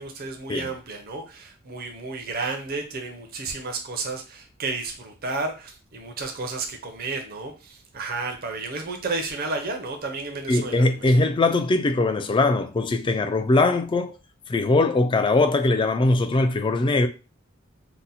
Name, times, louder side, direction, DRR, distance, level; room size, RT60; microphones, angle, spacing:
voice 1, 0.0-11.1, right 3 dB, 45° right, 0.6 m, -32 dB
voice 2, 10.5-14.1 14.5-17.1, left 2 dB, 25° left, 0.3 m, -21 dB
2.8 x 2.1 x 3.9 m
head